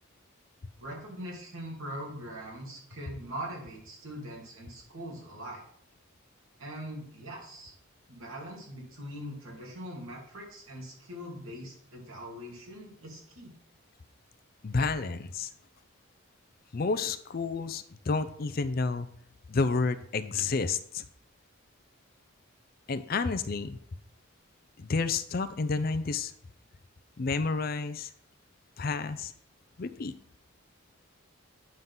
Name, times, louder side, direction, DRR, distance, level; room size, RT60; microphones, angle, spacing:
voice 1, 0.8-5.6 6.6-7.7 8.1-13.5, equal, 80° right, -1 dB, 2.6 m, -42 dB
voice 2, 14.6-15.5 16.7-19.1 19.5-21.0 22.9-23.8 24.8-26.3 27.2-28.1 28.8-29.3 29.8-30.2, left 4 dB, 45° left, 13 dB, 0.4 m, -30 dB
9.3 x 3.8 x 5.6 m, 0.63 s
head